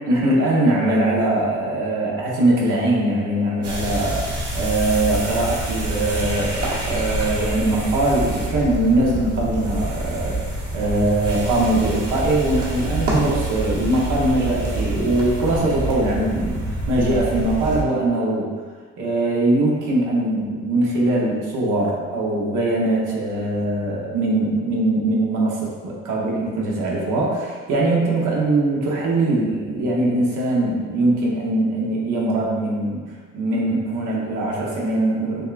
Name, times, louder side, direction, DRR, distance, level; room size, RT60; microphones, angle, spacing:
voice 1, 0.1-10.4 10.7-18.5 19.0-33.0 33.3-35.5, right 2 dB, 90° right, -3 dB, 1.0 m, -21 dB
sound 1, 3.6-17.8, right 1 dB, 50° right, 1.1 m, -27 dB
6.4 x 2.3 x 2.5 m, 1.5 s
cardioid pair, 90°, 30 cm